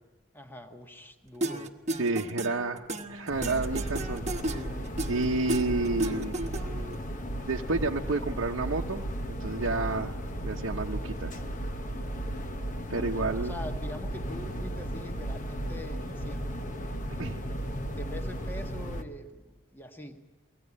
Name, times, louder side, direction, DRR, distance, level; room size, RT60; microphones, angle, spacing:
voice 1, 0.3-1.7 12.9-17.0 17.9-20.2, left 1 dB, 10° left, 5 dB, 1.4 m, -44 dB
sound 1, 1.4-6.9, right 2 dB, 35° right, 1.2 m, -34 dB
voice 2, 2.0-4.2 5.1-6.3 7.5-10.1 10.4-11.4 12.9-13.6 17.2-17.4, right 3 dB, 70° right, -1 dB, 0.8 m, -30 dB
sound 2, 3.3-19.0, right 1 dB, 40° left, 1.2 m, -35 dB
23.0 x 18.0 x 9.8 m, 1.2 s
head